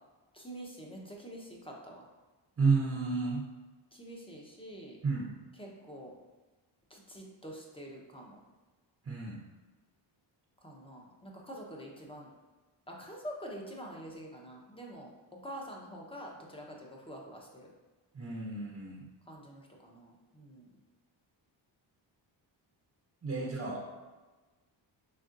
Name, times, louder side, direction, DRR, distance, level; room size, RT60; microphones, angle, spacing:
voice 1, 0.3-2.0 3.9-5.0 5.6-6.1 6.9-8.4 10.6-12.3 12.9-17.7 19.3-20.7 23.4-23.8, equal, 10° left, -1 dB, 0.8 m, -46 dB
voice 2, 2.6-3.4 5.0-5.3 9.1-9.4 18.1-19.0 23.2-24.0, right 4 dB, 30° right, -3 dB, 0.8 m, -31 dB
4.1 x 3.6 x 2.5 m, 1.2 s
cardioid pair, 75°, 48 cm